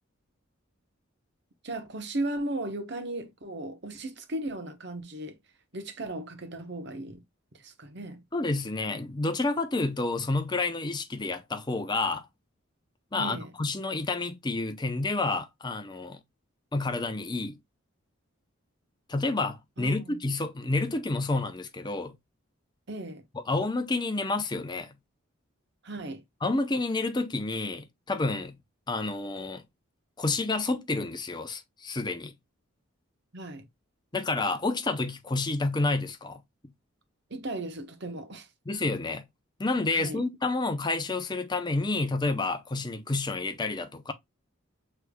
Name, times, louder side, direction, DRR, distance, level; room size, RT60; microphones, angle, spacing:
voice 1, 1.6-5.4 5.7-7.2 7.5-8.2 13.2-13.5 19.8-20.2 22.9-23.2 25.8-26.2 33.3-33.7 37.3-38.5 39.9-40.2, right 1 dB, 55° right, 1.0 m, -36 dB
voice 2, 8.3-12.3 13.1-16.2 16.7-17.6 19.1-22.2 23.3-24.9 26.4-28.6 28.9-29.6 30.2-32.3 34.1-36.4 38.7-39.3 39.6-44.1, left 3 dB, 20° left, 0.5 m, -29 dB
6.5 x 3.3 x 2.2 m
head